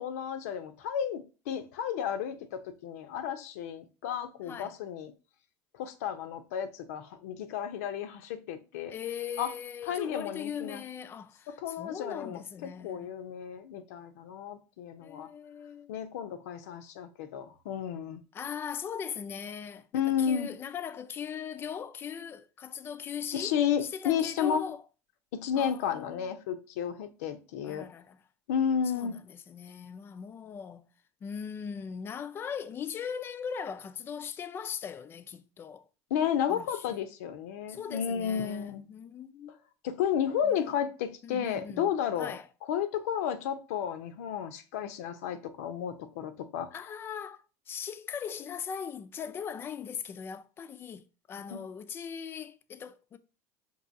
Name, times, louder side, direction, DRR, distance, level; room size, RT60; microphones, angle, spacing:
voice 1, 0.0-5.1 5.7-8.9 9.4-9.5 9.9-10.8 11.5-15.3 15.9-18.2 19.9-20.5 23.3-24.7 25.3-27.9 28.5-29.2 36.1-38.9 39.8-42.4 42.7-46.7 51.5-51.6, left 8 dB, 85° left, 0.5 m, -32 dB
voice 2, 8.9-13.1 15.0-15.9 18.3-24.8 25.6-26.3 27.6-28.2 28.9-30.9 31.2-35.9 36.5-36.8 37.7-39.6 40.4-40.8 41.2-42.5 46.7-53.2, left 7 dB, 30° left, 0.4 m, -40 dB
5.4 x 2.7 x 2.6 m
supercardioid pair, 115°, 8 cm